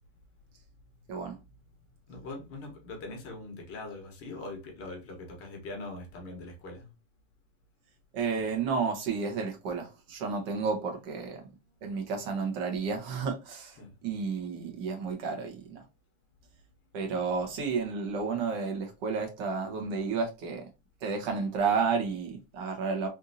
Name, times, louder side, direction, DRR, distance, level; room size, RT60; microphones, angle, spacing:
voice 1, 2.1-6.9 13.8-13.9 17.1-17.2, left 2 dB, 35° left, 1.3 m, -42 dB
voice 2, 8.1-11.4 11.8-13.8 14.0-15.8 16.9-20.7 21.0-23.1, right 5 dB, 55° right, 1.2 m, -31 dB
3.5 x 2.7 x 2.7 m
supercardioid pair, 140°, 40 cm